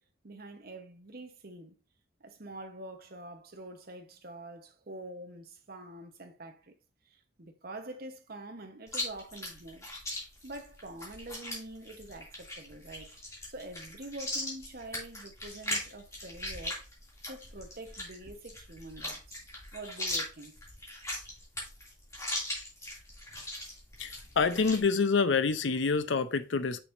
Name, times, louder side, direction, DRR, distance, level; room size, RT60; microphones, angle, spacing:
voice 1, 0.2-1.7 2.2-6.7 7.0-9.9 10.4-13.2 13.5-16.8 17.3-19.5 19.7-20.6, right 2 dB, 55° right, 1.0 m, -46 dB
Chewing mastication, 8.9-24.8, left 1 dB, 15° left, 2.5 m, -39 dB
voice 2, 24.0-26.8, left 4 dB, 75° left, 0.6 m, -27 dB
6.3 x 6.0 x 2.6 m
head